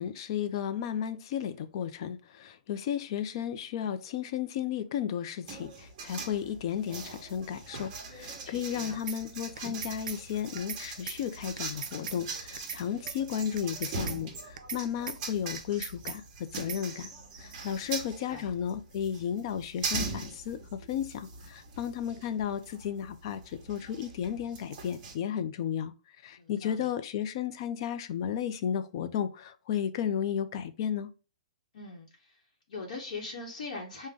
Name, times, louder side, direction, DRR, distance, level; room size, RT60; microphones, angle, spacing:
voice 1, 0.0-17.1 17.4-25.9 26.2-31.1, left 9 dB, 35° left, 0.4 m, -34 dB
sound 1, 5.5-25.1, right 4 dB, 30° right, 1.0 m, -41 dB
voice 2, 8.4-9.0 17.6-17.9 18.3-18.5 26.4-26.9 31.7-32.4 32.7-34.1, left 3 dB, 60° left, 0.9 m, -41 dB
sound 2, 9.1-9.2 9.6-10.2 10.6-10.8 11.1-11.2 11.6-12.2 12.6-12.8 13.1-13.2 13.6-14.2 14.6-14.8 15.1-15.2 15.6-16.2 16.6-16.8, right 7 dB, 70° right, 0.5 m, -38 dB
5.0 x 2.1 x 3.4 m
hypercardioid pair, 165°, 4 cm